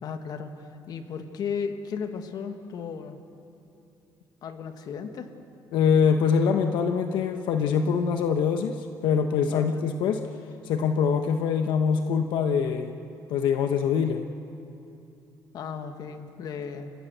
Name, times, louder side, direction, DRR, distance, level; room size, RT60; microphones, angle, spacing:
voice 1, 0.0-3.2 4.4-5.3 9.5-9.8 15.5-16.9, left 6 dB, 60° left, 7 dB, 1.5 m, -35 dB
voice 2, 5.7-10.2 10.6-13.0 13.3-14.3, left 6 dB, 85° left, 6 dB, 1.0 m, -24 dB
29.5 x 16.0 x 6.8 m, 2.8 s
cardioid pair, 145°, 8 cm